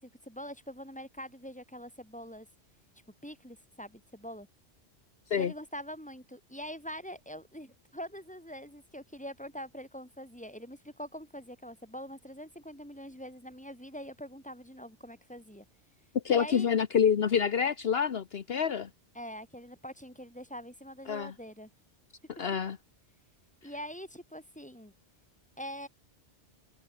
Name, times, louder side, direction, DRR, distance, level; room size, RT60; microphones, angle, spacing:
voice 1, 0.0-2.5 3.2-4.5 5.3-15.7 16.3-16.7 19.2-21.7 23.6-24.9 25.6-25.9, equal, 5° left, 7.3 m, -44 dB
voice 2, 16.2-18.9 21.1-21.3 22.4-22.8, left 7 dB, 60° left, 1.2 m, -27 dB
omnidirectional pair, 1.2 m